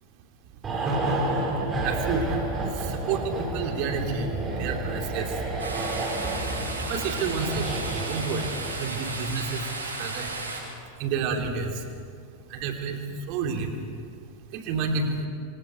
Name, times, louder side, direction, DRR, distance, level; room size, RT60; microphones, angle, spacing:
sound 1, 0.6-9.2 9.4-9.6, right 2 dB, 20° right, 5.1 m, -30 dB
voice 1, 1.8-2.4 2.8-5.3 6.9-7.6 8.0-8.5 8.8-9.6 10.0-10.3 11.0-11.7 12.5-13.0 13.3-13.7 14.5-15.3, right 5 dB, 45° right, 3 dB, 2.9 m, -29 dB
sound 2, 5.6-10.6, right 2 dB, 75° right, 6.7 m, -34 dB
28.0 x 25.0 x 4.7 m, 2.2 s
figure-of-eight pair, 90°, 0 cm